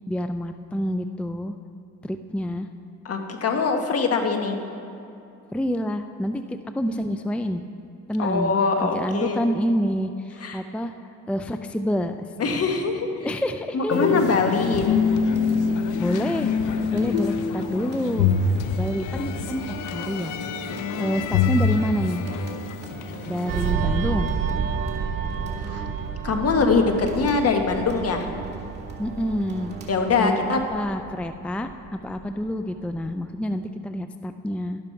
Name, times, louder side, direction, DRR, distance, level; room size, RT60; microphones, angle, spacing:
voice 1, 0.0-1.5 2.0-2.7 5.5-7.6 8.1-8.5 8.8-10.9 11.3-12.6 13.2-14.3 14.6-14.7 16.0-16.5 16.9-18.3 18.8-20.4 21.0-22.2 23.3-24.3 29.0-29.7 30.2-34.8, equal, 5° left, 8 dB, 0.4 m, -28 dB
voice 2, 3.0-4.6 8.2-9.4 10.4-10.6 12.4-13.3 13.7-14.9 20.7-21.2 25.6-25.8 26.2-28.3 29.9-30.6, left 4 dB, 50° left, 4 dB, 1.5 m, -23 dB
sound 1, 13.9-23.7, left 5 dB, 85° left, 0.7 m, -25 dB
sound 2, 14.0-30.5, right 4 dB, 35° right, 2.3 m, -41 dB
sound 3, 23.5-32.5 32.9-33.1, right 6 dB, 85° right, 0.9 m, -30 dB
12.0 x 12.0 x 4.6 m, 2.9 s
cardioid pair, 90°, 30 cm